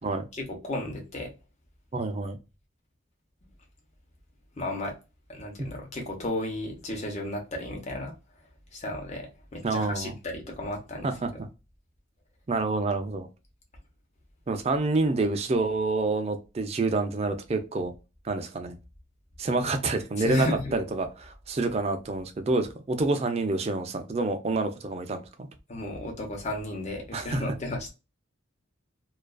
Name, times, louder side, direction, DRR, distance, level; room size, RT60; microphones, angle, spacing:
voice 1, 0.3-1.3 4.6-4.9 5.3-8.1 8.7-11.1 20.2-20.7 25.7-27.9, left 2 dB, 35° left, 0.8 m, -33 dB
voice 2, 1.9-2.4 5.6-5.7 9.6-10.2 11.0-11.3 12.5-13.3 14.5-17.9 18.2-18.8 19.4-25.5 27.1-27.4, right 3 dB, 30° right, 0.4 m, -28 dB
2.4 x 2.3 x 2.2 m
head